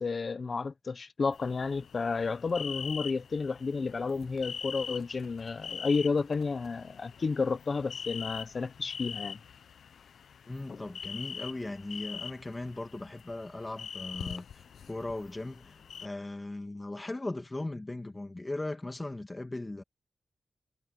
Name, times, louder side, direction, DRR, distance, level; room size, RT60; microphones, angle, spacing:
voice 1, 0.0-9.4 10.7-10.8, left 4 dB, 45° left, 0.9 m, -31 dB
sound 1, 1.3-16.1, left 7 dB, 80° left, 0.6 m, -43 dB
voice 2, 10.5-19.8, left 2 dB, 20° left, 2.4 m, -38 dB
wide cardioid pair, 100°, 0 cm